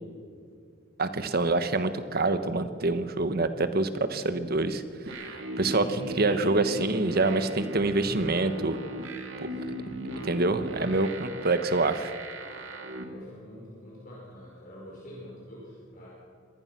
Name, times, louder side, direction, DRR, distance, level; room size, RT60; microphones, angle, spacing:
voice 1, 1.0-4.8 5.1-8.8 10.2-12.1, right 2 dB, 50° right, 11 dB, 1.3 m, -26 dB
sound 1, 5.1-13.0, right 1 dB, 65° right, 2.6 m, -37 dB
voice 2, 9.2-9.9 11.1-11.2 12.2-16.1, equal, 45° left, -5 dB, 5.2 m, -47 dB
25.0 x 19.0 x 6.1 m, 2.4 s
head